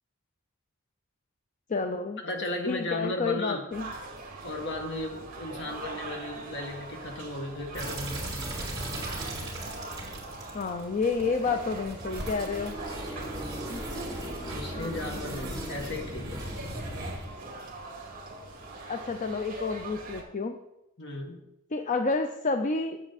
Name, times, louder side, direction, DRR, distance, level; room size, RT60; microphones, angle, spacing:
voice 1, 1.7-2.2 2.7-3.9 10.5-12.8 13.7-13.8 18.9-20.6 21.7-23.0, left 4 dB, 35° left, 7 dB, 0.5 m, -29 dB
voice 2, 2.2-3.6 4.4-8.2 14.5-16.4 21.0-21.4, left 2 dB, 55° left, 3 dB, 1.7 m, -35 dB
sound 1, 3.7-20.2, right 2 dB, 40° right, 2.4 m, -42 dB
sound 2, 7.7-17.3, right 1 dB, 20° right, 3.9 m, -37 dB
10.5 x 8.5 x 4.1 m, 0.89 s
head